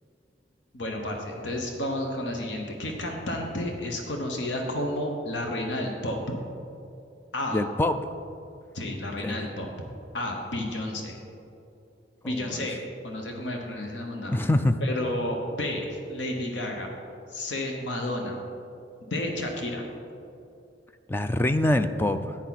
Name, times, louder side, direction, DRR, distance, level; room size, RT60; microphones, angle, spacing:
voice 1, 0.7-6.3 7.3-7.6 8.7-9.7 10.1-11.2 12.2-12.8 13.0-14.5 14.8-16.9 17.3-18.4 19.0-19.8, left 1 dB, 80° left, 2 dB, 1.0 m, -31 dB
voice 2, 7.5-8.0 9.2-9.4 12.2-12.7 14.3-14.8 21.1-22.4, left 1 dB, 10° left, 9 dB, 0.3 m, -25 dB
10.5 x 9.1 x 4.1 m, 2.7 s
head